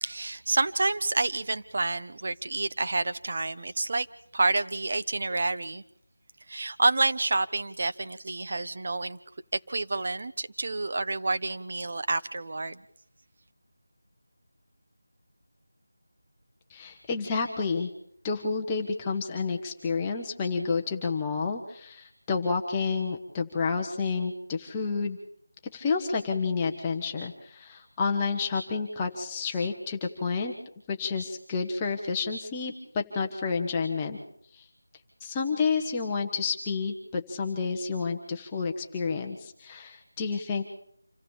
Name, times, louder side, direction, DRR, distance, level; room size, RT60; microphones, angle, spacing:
voice 1, 0.0-4.1 4.3-5.8 6.5-9.2 9.5-12.8, right 3 dB, 45° right, 11 dB, 1.0 m, -28 dB
voice 2, 16.7-17.9 18.2-25.2 25.7-30.5 30.9-34.2 34.5-34.7 35.2-40.6, left 4 dB, 15° left, 0 dB, 1.1 m, -30 dB
27.0 x 15.0 x 7.3 m, 0.68 s
figure-of-eight pair, 170°, 0 cm